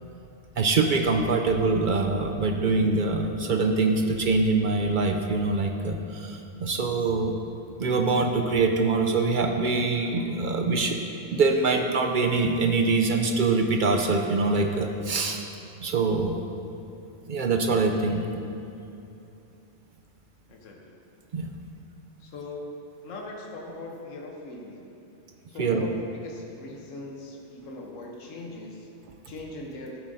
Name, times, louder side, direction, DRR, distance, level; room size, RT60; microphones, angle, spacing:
voice 1, 0.6-7.3 7.8-11.0 11.3-15.4 15.8-16.4 17.3-18.3 21.3-21.5 25.6-25.8, right 3 dB, 60° right, 4 dB, 0.5 m, -24 dB
voice 2, 20.5-20.9 22.2-22.7 23.0-24.8 25.5-28.9 29.3-30.0, left 2 dB, 85° left, 0 dB, 1.3 m, -40 dB
14.0 x 7.2 x 2.6 m, 2.7 s
omnidirectional pair, 1.3 m